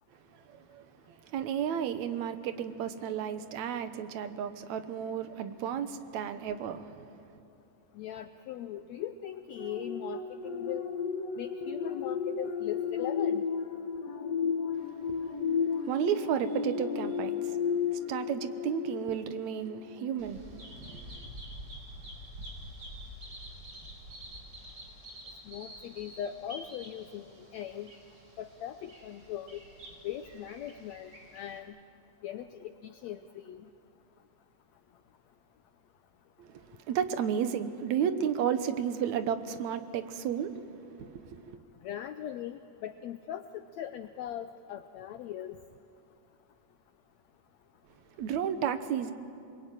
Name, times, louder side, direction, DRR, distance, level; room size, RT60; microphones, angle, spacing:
voice 1, 0.5-0.9 1.3-7.1 15.1-15.3 15.6-17.6 17.9-21.0 36.4-40.7 41.0-41.6 48.2-49.1, right 8 dB, 65° right, 10 dB, 2.3 m, -33 dB
voice 2, 8.0-10.9 11.4-13.4 25.5-27.9 28.4-29.6 30.0-31.7 32.2-33.7 41.8-45.6, left 11 dB, 75° left, 9 dB, 1.7 m, -40 dB
sound 1, 9.6-19.4 19.9-20.1, left 6 dB, 55° left, 2.8 m, -33 dB
Bird vocalization bird call bird song, 20.2-31.6, equal, 30° right, 5.4 m, -48 dB
27.0 x 23.0 x 9.1 m, 2.8 s
omnidirectional pair, 3.7 m